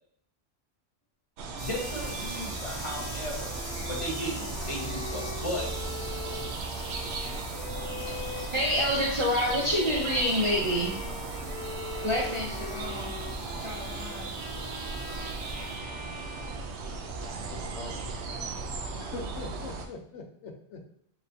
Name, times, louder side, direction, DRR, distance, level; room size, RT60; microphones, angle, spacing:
sound 1, 1.4-19.9, right 3 dB, 75° right, 0.8 m, -36 dB
Bowed string instrument, 1.5-17.4, left 3 dB, 50° left, 0.7 m, -43 dB
sound 2, 1.6-15.8, equal, 65° left, 2.1 m, -45 dB
voice 1, 1.6-3.5 3.9-5.7, equal, 30° left, -3 dB, 1.1 m, -35 dB
voice 2, 7.9-11.0 12.0-13.2 13.6-14.4, equal, 35° right, -3 dB, 0.6 m, -28 dB
voice 3, 17.3-18.4 19.0-20.9, left 3 dB, 90° left, 4 dB, 1.0 m, -43 dB
4.4 x 3.1 x 2.7 m, 0.69 s
omnidirectional pair, 1.2 m